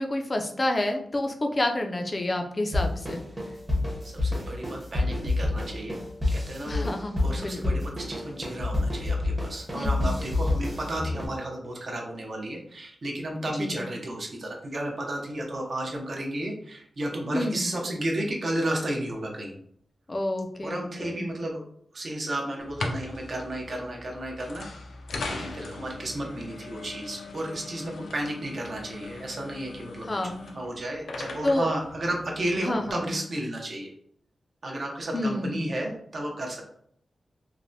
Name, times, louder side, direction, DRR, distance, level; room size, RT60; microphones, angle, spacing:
voice 1, 0.0-3.2 6.7-7.8 9.7-10.0 13.6-13.8 17.3-17.7 20.1-21.3 30.1-30.4 31.4-31.7 32.6-33.1 35.1-35.6, left 1 dB, 30° left, 4 dB, 0.4 m, -29 dB
sound 1, 2.7-11.3, left 2 dB, 20° right, 0.7 m, -28 dB
voice 2, 4.0-6.0 6.3-6.9 7.2-19.5 20.6-21.6 21.9-24.7 25.2-30.1 30.5-33.9 34.6-36.6, right 1 dB, 50° right, 0 dB, 0.6 m, -33 dB
sound 2, 22.6-32.9, left 3 dB, 90° left, 0.4 m, -40 dB
3.2 x 2.1 x 2.6 m, 0.67 s
wide cardioid pair, 120°, 0 cm